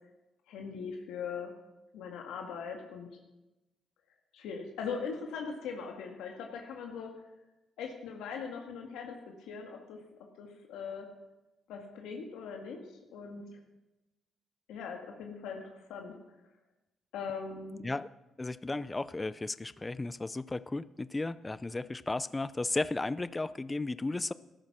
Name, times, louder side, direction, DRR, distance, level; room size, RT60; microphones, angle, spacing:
voice 1, 0.5-1.5 1.9-3.1 4.3-7.1 7.8-10.0 10.4-11.1 11.7-12.8 13.1-13.6 14.7-16.1 17.1-17.8, left 6 dB, 90° left, 2 dB, 1.9 m, -40 dB
voice 2, 18.4-24.3, left 2 dB, 20° left, 16 dB, 0.5 m, -34 dB
14.0 x 12.0 x 6.1 m, 1.0 s
cardioid pair, 90°, 0 cm